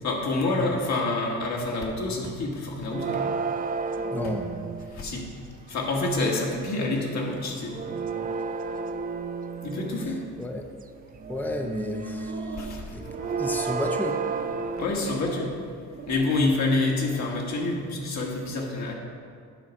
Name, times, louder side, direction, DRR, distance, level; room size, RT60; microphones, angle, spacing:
voice 1, 0.0-3.2 4.9-5.3 5.7-7.7 9.6-10.2 12.6-12.8 14.8-15.5 16.1-18.9, left 2 dB, 65° left, -1 dB, 1.7 m, -27 dB
sound 1, 2.9-5.3 7.2-10.4 11.0-14.9, right 4 dB, 30° right, 0.3 m, -32 dB
voice 2, 4.1-4.5 10.4-10.7 11.3-13.1 13.4-14.3, left 1 dB, 5° left, 4 dB, 0.6 m, -32 dB
sound 2, 12.1-12.7 13.0-13.6 14.0-14.5 15.0-15.5 15.9-16.4 16.8-17.2, right 3 dB, 70° right, 1.4 m, -40 dB
9.0 x 4.0 x 5.9 m, 2.2 s
cardioid pair, 90°, 30 cm